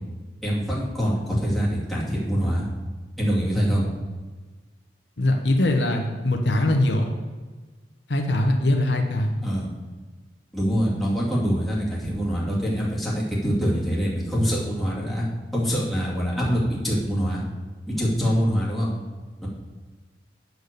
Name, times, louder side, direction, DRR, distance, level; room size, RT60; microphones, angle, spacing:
voice 1, 0.4-2.7 3.2-3.8 9.4-9.7 10.5-15.3 15.5-17.4 17.9-18.9 19.4-19.5, equal, ahead, -7 dB, 2.5 m, -24 dB
voice 2, 5.2-7.1 8.1-9.4, left 1 dB, 70° left, 3 dB, 1.0 m, -22 dB
8.2 x 6.3 x 6.8 m, 1.3 s
head